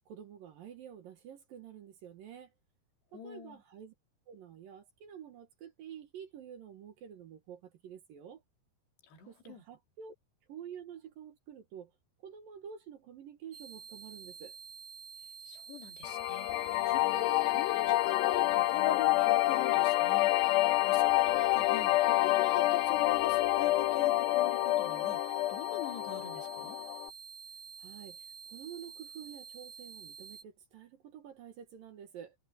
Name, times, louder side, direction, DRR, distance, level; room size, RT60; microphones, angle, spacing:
voice 1, 0.1-2.5 3.1-3.9 4.3-8.4 9.3-10.1 10.5-11.9 12.2-14.5 27.8-28.2 28.5-32.4, right 8 dB, 60° right, 2.8 m, -49 dB
voice 2, 3.1-3.6 9.1-9.6 15.4-26.8, left 9 dB, 70° left, 4.7 m, -43 dB
sound 1, 13.5-30.4, right 6 dB, 35° right, 6.2 m, -49 dB
sound 2, 16.0-27.1, left 18 dB, 85° left, 2.8 m, -28 dB
omnidirectional pair, 5.0 m